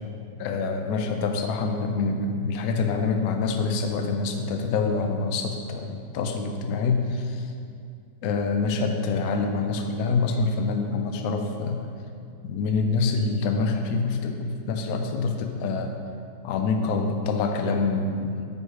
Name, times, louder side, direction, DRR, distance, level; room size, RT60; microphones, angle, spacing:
voice 1, 0.4-7.5 8.2-11.9 12.4-15.9 16.4-18.4, left 4 dB, 75° left, 4 dB, 0.8 m, -26 dB
5.3 x 4.7 x 4.6 m, 2.3 s
omnidirectional pair, 2.0 m